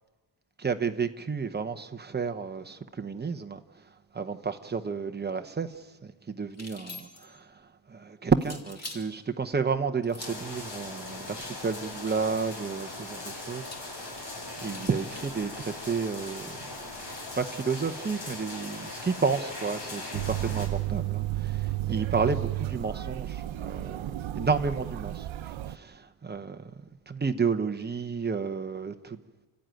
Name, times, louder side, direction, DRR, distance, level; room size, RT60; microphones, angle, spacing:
voice 1, 0.6-3.6 4.1-5.7 6.0-7.4 7.9-13.7 14.0-14.3 14.6-16.7 17.3-25.3 25.7-26.6 27.1-29.2, right 5 dB, 20° right, 8 dB, 0.9 m, -31 dB
sound 1, 6.5-7.4 8.4-9.1 10.0-10.5 11.6-12.4 13.5-15.4, left 3 dB, 35° left, 2.7 m, -45 dB
sound 2, 10.2-20.7, left 2 dB, 55° left, 7.0 m, -40 dB
sound 3, 20.1-25.8, right 15 dB, 85° right, 0.7 m, -32 dB
29.5 x 13.0 x 9.2 m, 1.3 s
wide cardioid pair, 145°, 46 cm